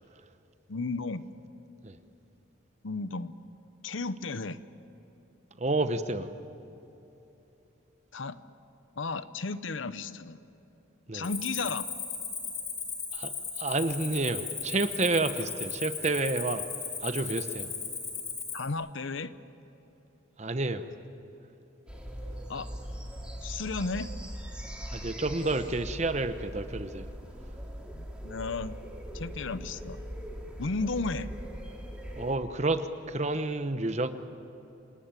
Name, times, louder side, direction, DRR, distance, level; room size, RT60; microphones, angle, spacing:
voice 1, 0.7-1.3 2.8-3.3 3.8-4.6 8.1-8.4 9.0-10.4 11.1-11.8 18.5-19.4 22.5-22.7 23.4-24.1 27.9-28.8 29.1-30.0 30.6-31.3, left 3 dB, 70° left, 14 dB, 0.8 m, -34 dB
voice 2, 5.6-6.3 11.1-11.3 13.1-16.6 17.0-17.7 20.4-20.8 24.9-27.1 32.1-34.1, right 2 dB, 35° right, 10 dB, 0.9 m, -30 dB
Cricket, 11.2-18.7, left 5 dB, 20° left, 4.1 m, -36 dB
sound 1, 21.9-32.3, equal, 5° right, 2.5 m, -41 dB
27.5 x 19.0 x 9.0 m, 3.0 s
head